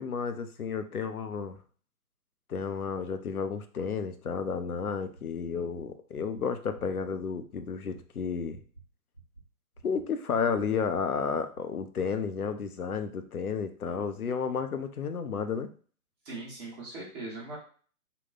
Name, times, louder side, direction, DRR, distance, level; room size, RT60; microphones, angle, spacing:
voice 1, 0.0-1.6 2.5-8.6 9.8-15.7, left 6 dB, 70° left, 8 dB, 0.7 m, -32 dB
sound 1, 5.2-5.3 5.5-5.8 6.1-6.4 6.7-7.0 7.3-7.6 7.9-8.2 8.5-8.8 9.1-9.4 9.7-10.0 10.3-10.6 10.9-11.2 11.5-11.6, right 3 dB, 15° left, 0.4 m, -51 dB
voice 2, 16.2-17.6, right 2 dB, 15° right, -4 dB, 1.1 m, -40 dB
3.8 x 2.3 x 3.8 m, 0.42 s
figure-of-eight pair, 130°, 45 cm